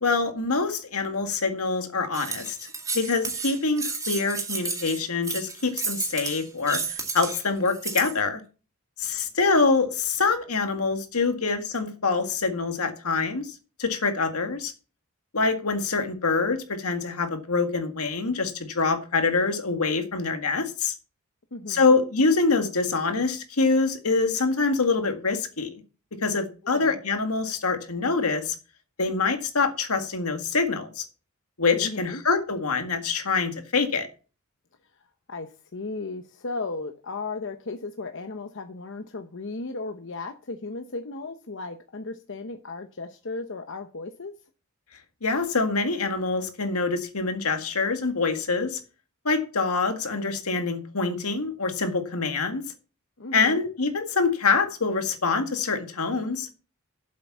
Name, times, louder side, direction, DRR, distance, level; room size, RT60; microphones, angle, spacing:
voice 1, 0.0-2.6 2.9-8.4 9.0-14.7 15.3-20.9 21.7-25.8 26.2-28.6 29.0-31.1 31.6-34.1 45.2-48.8 49.2-52.6 53.3-56.5, left 4 dB, 85° left, 1.9 m, -25 dB
sound 1, 2.1-8.2, right 4 dB, 15° right, 2.1 m, -32 dB
voice 2, 21.5-22.0 26.6-27.0 31.8-32.2 35.0-44.3 53.2-53.6, left 3 dB, 60° left, 0.9 m, -36 dB
7.9 x 7.6 x 7.3 m
head